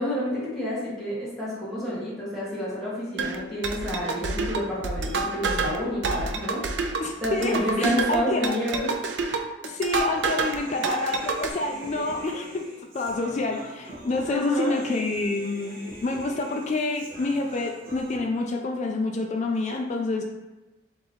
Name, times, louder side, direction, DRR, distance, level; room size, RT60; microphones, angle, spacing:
voice 1, 0.0-6.6 7.2-8.9 9.2-9.4 14.2-14.7, equal, ahead, -10 dB, 1.4 m, -29 dB
sound 1, 3.2-10.6 10.8-11.5, right 3 dB, 70° right, 0.4 m, -28 dB
voice 2, 7.0-8.4 9.6-12.7 12.9-20.2, left 2 dB, 35° left, 2 dB, 0.3 m, -28 dB
Human voice, 10.1-18.2, right 1 dB, 45° right, 0.8 m, -43 dB
3.8 x 2.8 x 4.1 m, 1.1 s
head